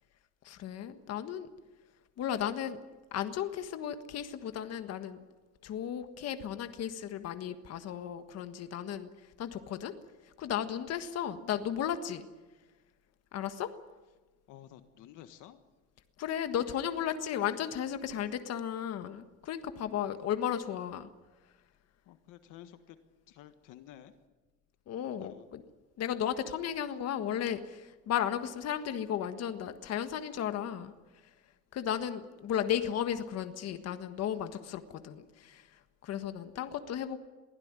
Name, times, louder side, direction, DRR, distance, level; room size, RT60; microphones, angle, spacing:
voice 1, 0.4-1.5 2.2-2.8 3.1-5.2 5.6-10.0 10.2-12.3 13.3-13.7 16.2-21.1 24.9-25.6 26.0-30.9 31.7-37.2, left 9 dB, 50° left, 9 dB, 1.6 m, -35 dB
voice 2, 14.5-15.6 19.9-20.0 22.0-23.0 23.3-24.1 25.2-25.5, left 12 dB, 70° left, 9 dB, 1.5 m, -52 dB
23.0 x 16.0 x 9.7 m, 1.2 s
cardioid pair, 145°, 32 cm